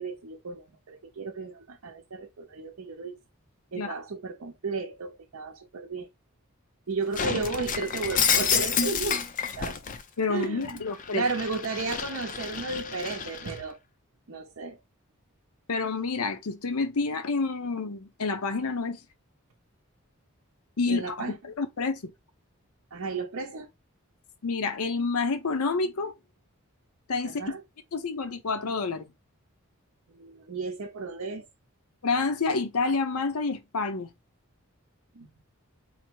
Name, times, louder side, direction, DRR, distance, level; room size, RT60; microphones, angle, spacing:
voice 1, 0.0-3.2 3.7-6.1 6.9-9.2 9.6-9.8 10.3-10.8 11.1-13.8 14.3-14.8 20.8-21.4 22.9-23.7 27.2-27.6 30.1-31.5 35.1-35.3, right 4 dB, 75° right, 0.6 m, -34 dB
Shatter, 7.1-10.0 10.4-13.6, left 7 dB, 35° left, 0.4 m, -29 dB
voice 2, 10.2-11.2 15.7-19.0 20.8-22.1 24.4-26.1 27.1-27.4 27.9-29.1 32.0-34.1, left 4 dB, 80° left, 0.7 m, -28 dB
4.0 x 2.0 x 4.4 m
head